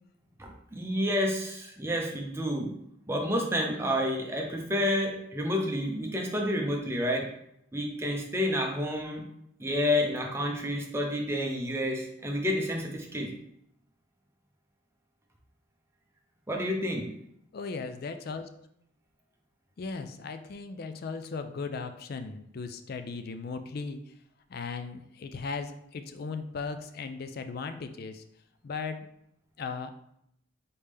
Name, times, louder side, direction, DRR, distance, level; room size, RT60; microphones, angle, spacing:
voice 1, 0.4-2.7 3.1-7.3 7.7-9.3 9.6-13.3 16.5-17.1, left 1 dB, 10° right, 0 dB, 0.6 m, -29 dB
voice 2, 17.5-18.7 19.8-24.1 24.5-28.2 28.6-29.1 29.6-29.9, left 4 dB, 45° left, 9 dB, 0.4 m, -37 dB
4.2 x 3.4 x 3.4 m, 0.74 s
head